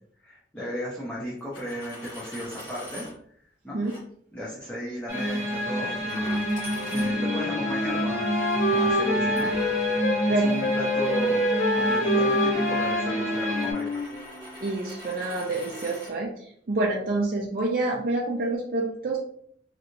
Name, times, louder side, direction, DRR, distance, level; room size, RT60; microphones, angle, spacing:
voice 1, 0.2-3.1 3.6-3.8 4.3-6.5 6.9-9.5 9.9-11.4 11.7-13.9, equal, 10° left, -8 dB, 0.7 m, -35 dB
Coin (dropping), 1.4-3.1 3.8-4.0 6.1-7.5 9.4-16.1, left 1 dB, 25° left, 1.1 m, -44 dB
sound 1, 5.1-13.7, equal, 15° right, 1.0 m, -28 dB
Wind instrument woodwind instrument, 6.7-10.3 10.6-14.6, left 1 dB, 50° left, 0.3 m, -27 dB
voice 2, 14.6-19.2, right 2 dB, 50° right, -2 dB, 0.4 m, -27 dB
3.2 x 2.8 x 2.5 m, 0.64 s
head